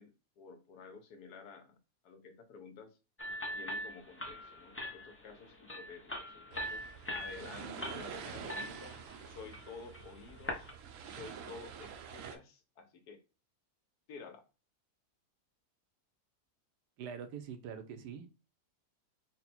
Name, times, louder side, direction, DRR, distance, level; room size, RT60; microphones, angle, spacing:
voice 1, 0.0-1.8 2.0-3.0 3.5-9.0 9.3-10.7 11.0-13.2 14.1-14.4, left 5 dB, 80° left, 1.3 m, -51 dB
sound 1, 3.2-10.7, equal, 20° left, 0.3 m, -43 dB
sound 2, 6.5-12.4, right 7 dB, 65° right, 0.8 m, -47 dB
voice 2, 17.0-18.3, right 7 dB, 85° right, 1.3 m, -44 dB
4.0 x 2.2 x 4.2 m
omnidirectional pair, 1.7 m